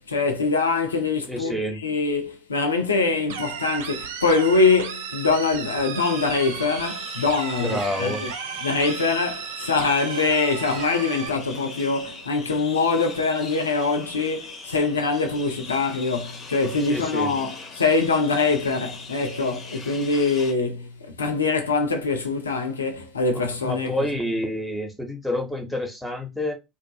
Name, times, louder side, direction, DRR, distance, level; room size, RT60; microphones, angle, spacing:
voice 1, 0.0-8.3 8.6-24.1, left 4 dB, 80° left, 0.5 m, -23 dB
voice 2, 1.3-1.8 7.6-8.2 16.8-17.3 23.3-26.5, left 1 dB, 5° left, 0.9 m, -28 dB
sound 1, 3.3-11.3, right 7 dB, 70° right, 0.4 m, -34 dB
sound 2, 6.0-20.5, left 3 dB, 40° left, 0.7 m, -41 dB
2.5 x 2.3 x 2.7 m
figure-of-eight pair, 65°, 0 cm